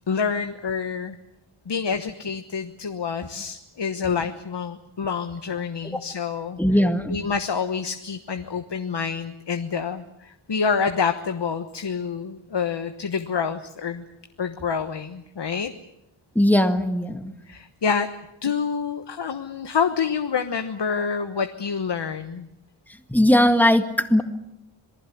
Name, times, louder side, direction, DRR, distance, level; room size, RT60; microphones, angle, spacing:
voice 1, 0.1-1.2 1.7-6.6 7.1-14.0 14.4-15.7 17.5-18.1 18.4-22.5, left 6 dB, 60° left, 7 dB, 1.3 m, -27 dB
voice 2, 6.6-7.2 16.3-17.3 23.1-24.2, left 1 dB, 5° left, 7 dB, 1.9 m, -19 dB
27.0 x 19.5 x 8.5 m, 0.86 s
wide cardioid pair, 115°, 48 cm